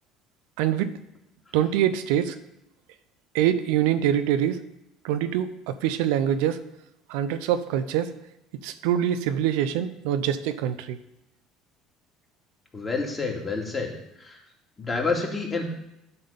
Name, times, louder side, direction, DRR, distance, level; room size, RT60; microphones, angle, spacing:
voice 1, 0.6-0.9 1.5-2.4 3.3-4.6 5.0-6.6 7.1-8.1 8.6-11.0, right 10 dB, 75° right, 12 dB, 0.6 m, -24 dB
voice 2, 12.7-13.9 14.2-14.4 14.8-15.7, left 4 dB, 30° left, 0 dB, 2.5 m, -28 dB
10.5 x 3.8 x 6.9 m, 0.85 s
hypercardioid pair, 65°, 0 cm